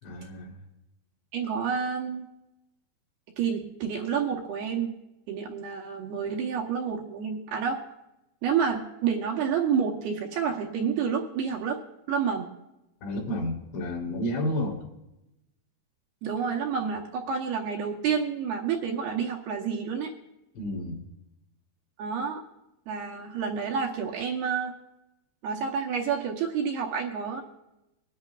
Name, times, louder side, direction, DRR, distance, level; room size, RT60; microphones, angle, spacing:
voice 1, 0.0-0.6 13.0-14.8 20.5-21.0, left 1 dB, 75° left, -7 dB, 5.0 m, -31 dB
voice 2, 1.3-2.3 3.4-5.0 5.3-7.8 8.4-11.8 12.1-12.5 16.2-20.1 22.0-22.4 22.9-24.7 25.4-27.4, right 6 dB, 75° right, 0 dB, 2.6 m, -29 dB
23.0 x 10.5 x 2.4 m, 0.91 s
omnidirectional pair, 5.1 m